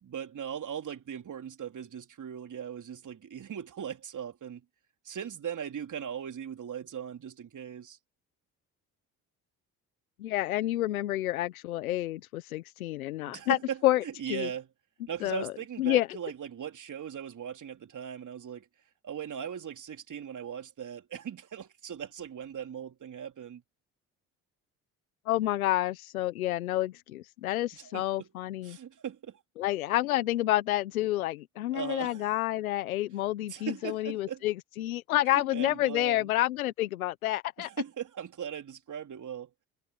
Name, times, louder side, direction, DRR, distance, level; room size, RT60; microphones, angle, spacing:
voice 1, 0.0-4.6 5.1-8.0 13.2-14.7 15.1-18.7 19.0-23.6 27.7-28.3 28.6-29.4 31.7-32.3 33.5-34.4 35.3-36.3 37.6-39.5, right 8 dB, 45° right, 3.6 m, -39 dB
voice 2, 10.2-13.6 13.8-14.5 15.2-15.5 15.8-16.1 25.3-28.8 29.6-37.7, left 15 dB, 90° left, 1.3 m, -29 dB
hypercardioid pair, 55°, 41 cm